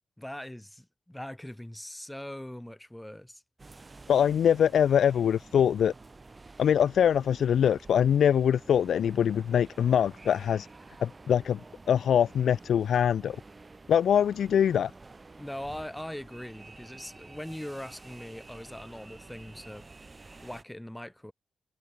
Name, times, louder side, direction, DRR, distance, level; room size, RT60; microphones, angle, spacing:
voice 1, 0.2-3.4 15.4-19.9 20.4-21.3, left 1 dB, 5° left, 3.3 m, -41 dB
sound 1, 3.6-20.6, right 3 dB, 30° right, 2.9 m, -50 dB
voice 2, 4.1-5.9 6.6-10.7 11.0-11.6 11.9-13.4 13.9-14.9, left 8 dB, 80° left, 0.4 m, -23 dB
cardioid pair, 65°, 0 cm